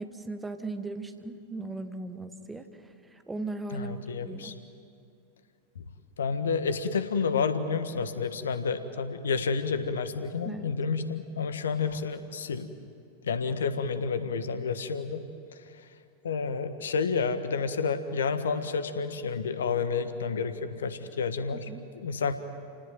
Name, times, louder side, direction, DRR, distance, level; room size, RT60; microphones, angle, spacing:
voice 1, 0.0-4.6 10.4-10.7 21.5-21.9, right 2 dB, 10° right, 8 dB, 1.6 m, -38 dB
voice 2, 3.7-4.5 6.2-12.7 13.2-15.2 16.2-22.4, left 5 dB, 65° left, 10 dB, 1.5 m, -30 dB
30.0 x 18.5 x 9.3 m, 2.5 s
figure-of-eight pair, 90°, 0 cm